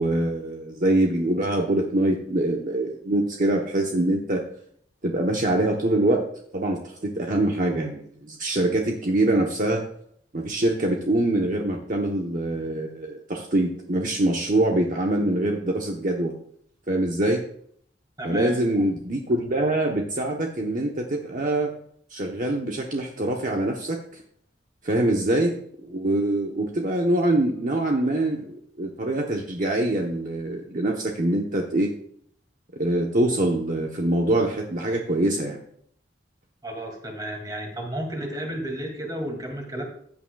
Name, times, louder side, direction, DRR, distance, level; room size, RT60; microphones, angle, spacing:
voice 1, 0.0-4.4 5.0-6.2 6.5-9.8 10.3-16.3 16.9-17.4 18.2-21.7 22.1-24.2 24.8-31.9 32.8-35.6, right 1 dB, 45° right, 1 dB, 1.0 m, -24 dB
voice 2, 18.2-18.6 36.6-39.8, right 1 dB, 20° right, 2 dB, 2.4 m, -32 dB
15.0 x 8.8 x 2.3 m, 0.65 s
head